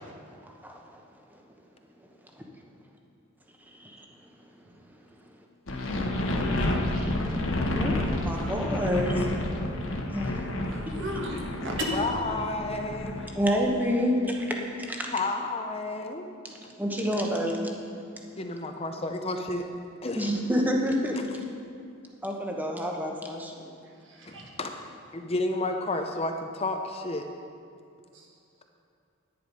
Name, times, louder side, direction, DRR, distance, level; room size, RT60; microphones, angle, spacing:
sound 1, 5.7-13.3, left 1 dB, 65° left, 1.2 m, -30 dB
voice 1, 7.7-9.3 10.1-10.4 13.3-15.1 16.8-17.7 20.2-21.2 22.2-23.7, equal, 10° right, 1 dB, 1.0 m, -28 dB
voice 2, 8.3-8.8 10.7-11.9 24.0-24.5 28.1-28.3, equal, 60° right, -1 dB, 1.8 m, -37 dB
voice 3, 11.9-13.3 15.1-16.3 18.4-19.7 20.0-20.4 21.2-21.3 24.3-24.8 25.1-27.2, left 2 dB, 30° left, 4 dB, 0.6 m, -31 dB
10.5 x 9.7 x 5.3 m, 2.4 s
head